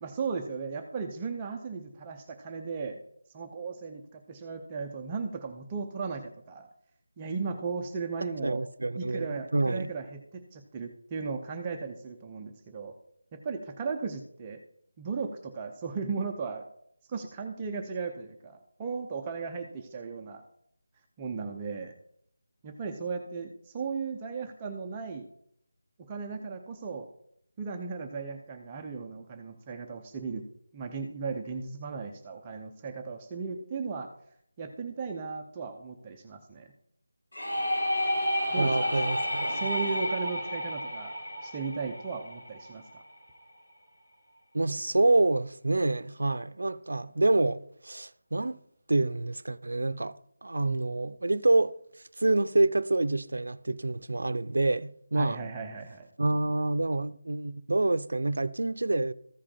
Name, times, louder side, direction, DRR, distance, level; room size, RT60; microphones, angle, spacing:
voice 1, 0.0-3.0 3.3-6.7 7.2-8.6 8.9-12.9 13.3-14.6 15.0-16.6 17.1-20.4 21.2-21.9 22.6-25.2 26.1-27.1 27.6-30.4 30.7-34.1 34.6-36.7 38.5-38.9 39.5-41.1 41.4-43.0 55.1-56.1, right 5 dB, 10° right, 0.5 m, -36 dB
voice 2, 8.4-9.9 38.6-39.6 44.5-48.6 48.9-50.2 50.4-51.7 52.2-55.4 56.2-59.1, right 2 dB, 75° right, 0.6 m, -27 dB
sound 1, 37.3-43.0, equal, 65° left, 4.0 m, -31 dB
14.5 x 5.1 x 4.3 m
figure-of-eight pair, 180°, 0 cm